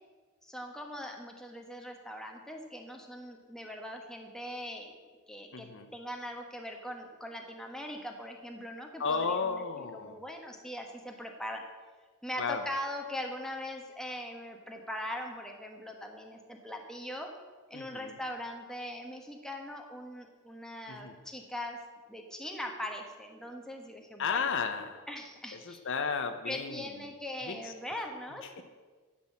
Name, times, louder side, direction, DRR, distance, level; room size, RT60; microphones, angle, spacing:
voice 1, 0.4-5.0 5.3-9.3 9.8-11.6 12.2-17.3 17.7-24.4 25.1-25.8 26.5-28.6, left 1 dB, 5° left, 2 dB, 1.3 m, -41 dB
voice 2, 5.5-5.9 9.0-10.2 12.4-12.6 17.7-18.2 20.9-21.2 24.2-25.0 25.5-26.9 27.4-27.7 28.6-28.7, left 5 dB, 60° left, 8 dB, 0.8 m, -33 dB
11.5 x 6.1 x 7.3 m, 1.4 s
head